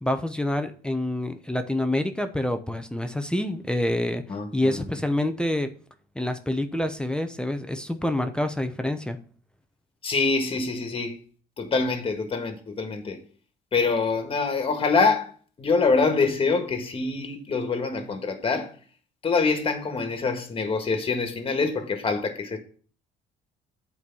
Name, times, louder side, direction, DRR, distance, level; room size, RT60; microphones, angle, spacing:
voice 1, 0.0-4.2 4.5-5.7 6.2-9.2, left 1 dB, 5° left, 0.8 m, -27 dB
voice 2, 4.3-4.8 10.0-11.2 11.6-13.2 13.7-15.3 15.6-18.7 19.2-22.6, left 4 dB, 30° left, 1.7 m, -25 dB
8.5 x 4.7 x 7.1 m
cardioid pair, 110°, 17 cm